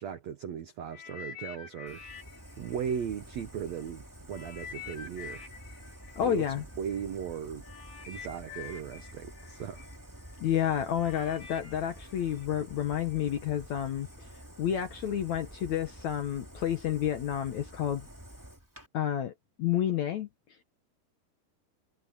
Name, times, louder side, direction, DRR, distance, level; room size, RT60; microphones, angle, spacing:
voice 1, 0.0-2.0 2.6-5.4 6.2-6.5 6.8-7.6 8.1-9.9, right 8 dB, 80° right, 1.5 m, -37 dB
sound 1, 0.9-3.8 4.3-13.3 14.0-14.1, left 7 dB, 85° left, 5.9 m, -48 dB
Fire, 1.9-18.9, equal, 5° right, 2.1 m, -49 dB
voice 2, 6.2-6.6 10.4-18.1 18.9-19.3 19.6-20.3, left 10 dB, 65° left, 1.9 m, -30 dB
omnidirectional pair, 4.7 m